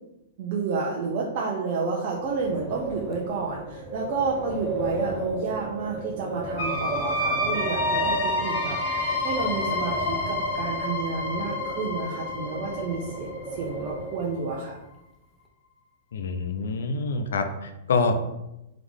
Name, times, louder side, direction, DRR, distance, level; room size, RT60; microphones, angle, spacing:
voice 1, 0.4-13.3 13.6-14.8, right 4 dB, 55° right, -2 dB, 0.7 m, -30 dB
Wind, 2.2-14.8, right 3 dB, 10° right, 0.7 m, -34 dB
sound 1, 6.6-14.2, left 2 dB, 60° left, 0.9 m, -29 dB
voice 2, 16.1-18.3, left 3 dB, 80° left, 8 dB, 0.5 m, -26 dB
3.7 x 3.1 x 3.6 m, 0.93 s
hypercardioid pair, 120°, 0 cm